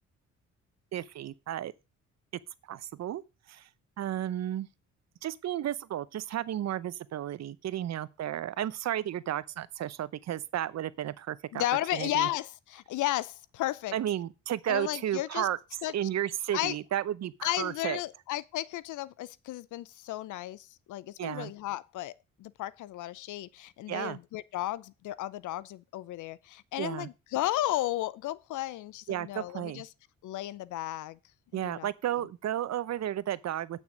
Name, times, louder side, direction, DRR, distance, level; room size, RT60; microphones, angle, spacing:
voice 1, 0.9-1.7 2.7-3.2 3.5-3.7 4.0-4.7 5.2-11.6 11.9-12.3 13.9-15.6 15.9-18.0 21.2-21.5 23.9-24.2 26.8-27.1 29.1-29.8 31.5-33.8, right 11 dB, 60° right, 0.8 m, -33 dB
voice 2, 11.5-13.9 14.7-15.5 15.8-15.9 16.5-16.8 17.4-29.9 30.2-31.2 31.5-31.9, left 15 dB, 80° left, 0.6 m, -34 dB
8.9 x 6.4 x 6.1 m
cardioid pair, 90°, 30 cm